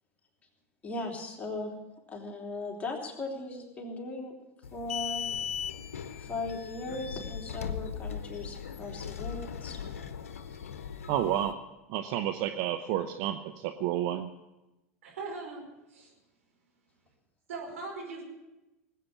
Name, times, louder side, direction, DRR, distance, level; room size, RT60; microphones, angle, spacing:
voice 1, 0.8-1.7 2.1-4.3 4.7-5.2 6.2-10.0 10.5-10.6, left 2 dB, 20° left, -1 dB, 3.3 m, -38 dB
sound 1, 4.6-11.5, left 7 dB, 75° left, 0.9 m, -38 dB
voice 2, 11.1-11.5 11.9-14.3, right 11 dB, 55° right, 8 dB, 0.8 m, -30 dB
voice 3, 15.0-16.1 17.5-18.2, right 3 dB, 75° right, -1 dB, 5.1 m, -40 dB
19.0 x 8.6 x 7.3 m, 0.99 s
hypercardioid pair, 85°, 8 cm